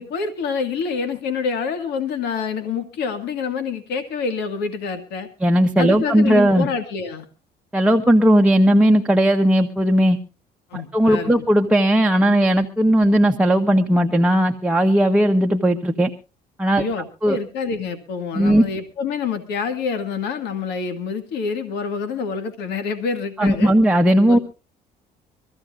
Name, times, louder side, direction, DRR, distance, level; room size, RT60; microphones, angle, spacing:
voice 1, 0.0-5.3 5.8-7.3 10.7-11.5 16.7-23.7 24.3-24.4, left 5 dB, 80° left, 9 dB, 1.7 m, -27 dB
voice 2, 5.4-6.7 7.7-10.2 10.7-16.1 16.6-16.9 17.2-17.4 18.3-18.6 23.4-24.4, right 1 dB, 5° right, 3 dB, 1.0 m, -17 dB
23.5 x 14.5 x 2.4 m, 0.31 s
cardioid pair, 110°, 17 cm